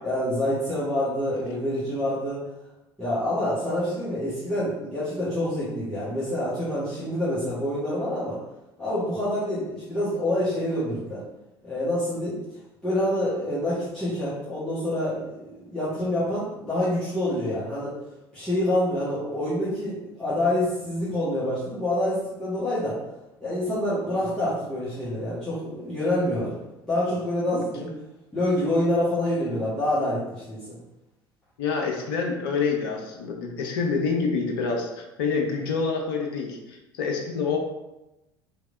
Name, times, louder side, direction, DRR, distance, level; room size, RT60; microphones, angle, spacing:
voice 1, 0.0-2.4 3.0-8.4 8.8-11.2 11.6-12.4 12.8-17.9 18.3-23.0 23.4-27.9 28.3-30.8, left 1 dB, 5° left, -13 dB, 1.3 m, -27 dB
voice 2, 31.6-37.6, left 5 dB, 60° left, 2 dB, 0.5 m, -27 dB
3.3 x 3.1 x 2.5 m, 0.96 s
figure-of-eight pair, 65°, 13 cm